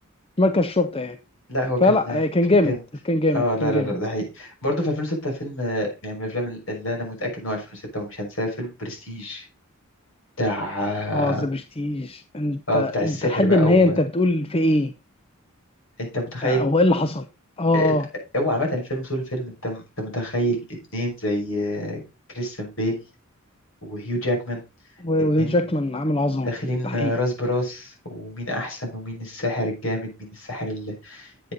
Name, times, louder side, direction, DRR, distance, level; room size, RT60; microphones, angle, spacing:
voice 1, 0.4-1.2 1.8-2.7 3.1-3.9 11.1-14.9 16.4-17.2 17.6-18.0 25.0-26.5 26.8-27.1, left 2 dB, 25° left, 0.6 m, -21 dB
voice 2, 1.5-2.2 2.6-2.8 3.3-9.4 10.4-11.5 12.7-14.0 16.0-16.7 17.7-18.0 18.3-22.0 22.3-23.0 23.8-24.6 25.4-25.6 26.4-31.3, left 1 dB, 65° left, 6.1 m, -27 dB
10.5 x 8.1 x 4.1 m
head